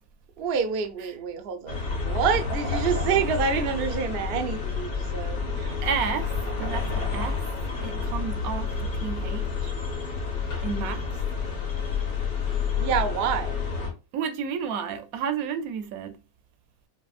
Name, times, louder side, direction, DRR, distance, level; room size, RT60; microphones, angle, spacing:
voice 1, 0.4-5.8 12.8-13.5, right 6 dB, 60° right, 0.6 m, -27 dB
sound 1, 1.7-13.9, left 5 dB, 85° left, 1.7 m, -29 dB
voice 2, 5.8-6.3 6.6-7.4 7.8-9.7 10.6-11.0 14.1-16.2, right 6 dB, 80° right, 1.0 m, -31 dB
5.3 x 2.1 x 2.4 m
omnidirectional pair, 1.5 m